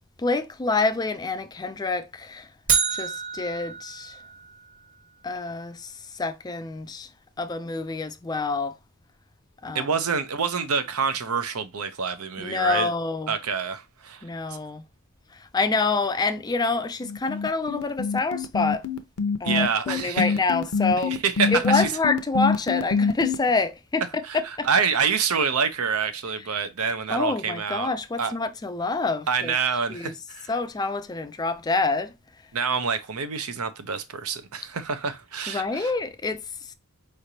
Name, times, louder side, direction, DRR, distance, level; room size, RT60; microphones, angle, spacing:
voice 1, 0.2-2.5 2.9-4.2 5.2-7.1 7.4-8.8 9.6-9.9 12.4-13.3 14.2-14.8 15.3-18.8 19.4-21.2 21.5-24.7 26.4-26.5 27.1-29.6 29.9-30.1 30.5-32.1 35.5-36.7, left 3 dB, 20° left, 0.3 m, -27 dB
sound 1, 2.7-4.8, right 6 dB, 35° right, 1.2 m, -28 dB
voice 2, 9.7-12.9 13.3-14.2 19.4-20.3 21.1-21.9 24.2-27.9 28.2-28.3 29.3-30.5 32.5-35.9, right 6 dB, 80° right, 0.7 m, -27 dB
sound 2, 17.0-23.3, left 5 dB, 75° left, 0.6 m, -25 dB
4.9 x 3.2 x 2.7 m
head